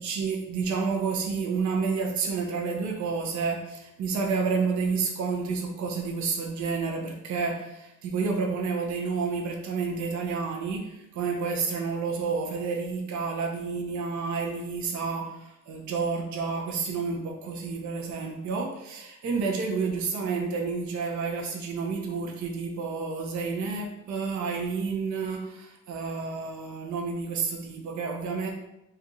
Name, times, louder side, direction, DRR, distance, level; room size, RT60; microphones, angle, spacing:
voice 1, 0.0-28.5, right 5 dB, 65° right, 1 dB, 0.8 m, -30 dB
3.4 x 2.9 x 3.7 m, 0.87 s
cardioid pair, 100°, 31 cm